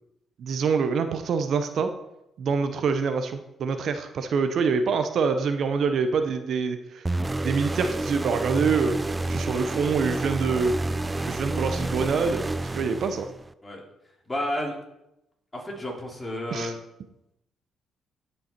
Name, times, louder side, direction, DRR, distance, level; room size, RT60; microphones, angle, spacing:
voice 1, 0.4-1.9 2.4-7.1 7.4-9.0 9.3-10.7 11.3-13.3 16.5-16.7, right 5 dB, 65° right, 8 dB, 0.7 m, -25 dB
sound 1, 7.1-13.5, right 2 dB, 20° right, 0.4 m, -29 dB
voice 2, 14.3-14.7 15.5-16.7, left 1 dB, 20° left, -1 dB, 3.0 m, -31 dB
15.5 x 5.5 x 4.4 m, 0.87 s
cardioid pair, 90°, 0 cm